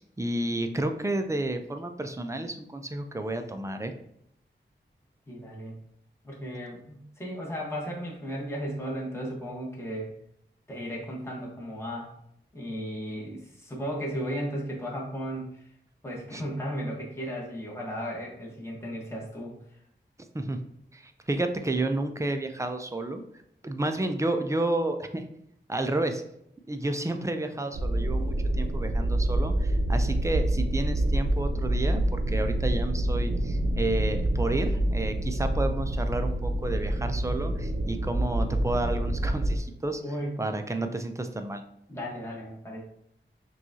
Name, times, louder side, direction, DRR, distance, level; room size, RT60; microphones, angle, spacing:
voice 1, 0.0-3.9 16.3-16.4 20.3-20.6 20.9-23.2 23.6-25.2 25.7-26.2 26.7-40.0 40.4-41.6, right 2 dB, 15° right, 6 dB, 0.4 m, -31 dB
voice 2, 5.3-5.7 6.2-10.1 10.7-12.1 12.5-15.6 16.0-19.5 40.0-40.4 41.9-42.8, equal, 15° left, -4 dB, 1.2 m, -35 dB
sound 1, 27.7-39.6, right 1 dB, 85° right, 0.7 m, -27 dB
5.8 x 2.4 x 2.7 m, 0.74 s
wide cardioid pair, 80°, 20 cm